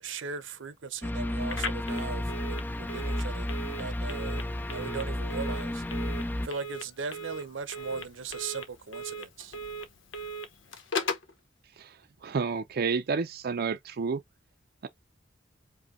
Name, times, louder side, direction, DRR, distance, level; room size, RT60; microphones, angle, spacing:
voice 1, 0.0-4.4 4.7-5.8 6.4-9.6, right 5 dB, 85° right, 0.7 m, -38 dB
sound 1, 1.0-6.5, left 1 dB, 10° left, 0.4 m, -32 dB
Telephone, 1.5-11.3, left 1 dB, 90° left, 1.0 m, -38 dB
voice 2, 12.2-14.2, right 5 dB, 55° right, 0.5 m, -30 dB
5.0 x 2.3 x 4.0 m
head